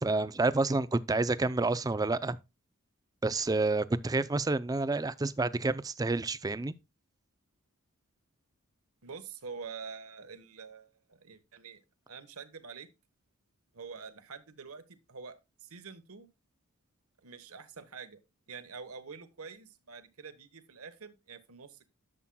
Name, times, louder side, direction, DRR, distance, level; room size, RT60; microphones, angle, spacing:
voice 1, 0.0-2.4 3.2-6.7, right 3 dB, 15° right, 0.4 m, -29 dB
voice 2, 9.0-11.8 12.1-12.9 13.7-16.3 17.2-18.2 18.5-21.9, right 5 dB, 75° right, 1.2 m, -46 dB
11.0 x 7.4 x 2.2 m
head